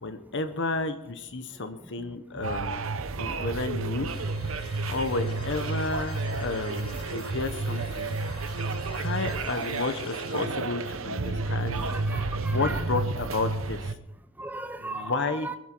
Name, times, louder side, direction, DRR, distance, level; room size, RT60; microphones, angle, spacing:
voice 1, 0.0-2.9 3.2-4.1 4.9-8.1 8.9-11.8 12.5-13.9 14.8-15.5, left 3 dB, 55° left, 1.0 m, -32 dB
sound 1, 2.4-14.0, right 3 dB, 65° right, 0.9 m, -31 dB
sound 2, 4.1-10.5, left 1 dB, 25° left, 3.4 m, -46 dB
voice 2, 11.7-12.8 14.4-15.6, right 2 dB, 10° right, 0.5 m, -37 dB
23.0 x 11.0 x 4.5 m
head